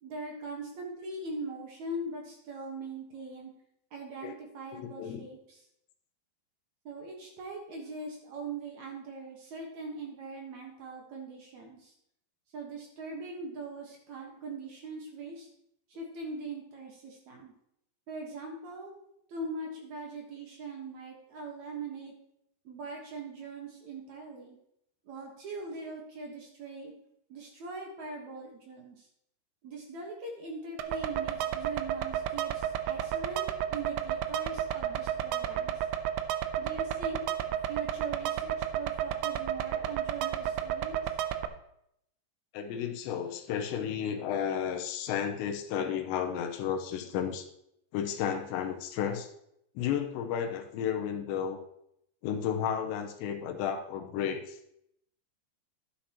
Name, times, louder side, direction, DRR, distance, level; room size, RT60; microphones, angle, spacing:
voice 1, 0.0-3.5 3.9-5.6 6.8-11.9 12.5-15.5 15.9-17.5 18.1-18.9 19.3-22.1 22.6-24.6 25.0-26.9 27.3-29.1 29.6-33.4 33.7-35.8 36.6-37.2 37.7-41.0, right 2 dB, 65° right, 0 dB, 1.8 m, -41 dB
voice 2, 4.7-5.2 42.5-47.5 47.9-49.3 49.8-51.6 52.2-54.6, left 8 dB, 85° left, 4 dB, 3.1 m, -32 dB
sound 1, 30.8-41.5, right 10 dB, 85° right, 2.2 m, -32 dB
11.5 x 10.0 x 2.9 m, 0.76 s
omnidirectional pair, 5.2 m